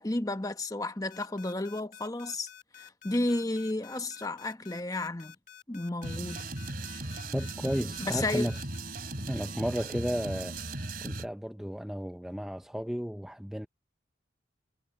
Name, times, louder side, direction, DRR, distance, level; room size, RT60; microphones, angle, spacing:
voice 1, 0.0-2.5 2.8-5.3 5.7-6.5 6.9-7.1 8.0-8.5, left 2 dB, 20° left, 1.0 m, -32 dB
sound 1, 1.1-8.8, left 11 dB, 40° left, 2.2 m, -51 dB
sound 2, 6.0-11.3, right 2 dB, 55° right, 2.9 m, -37 dB
voice 2, 7.3-8.5 9.3-10.6 11.0-13.7, equal, 5° right, 0.5 m, -33 dB
head